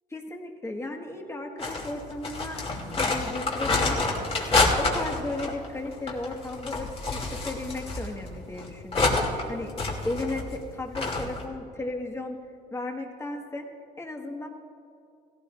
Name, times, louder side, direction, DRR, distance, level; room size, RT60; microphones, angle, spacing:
voice 1, 0.1-2.6 3.0-4.0 4.5-9.7 10.0-12.4 12.7-13.6 14.0-14.5, left 2 dB, 15° left, 2 dB, 1.7 m, -35 dB
sound 1, 1.6-9.4 9.7-10.7 10.9-11.5, left 3 dB, 35° left, 2.7 m, -28 dB
17.5 x 17.0 x 2.6 m, 2.4 s
cardioid pair, 110°, 17 cm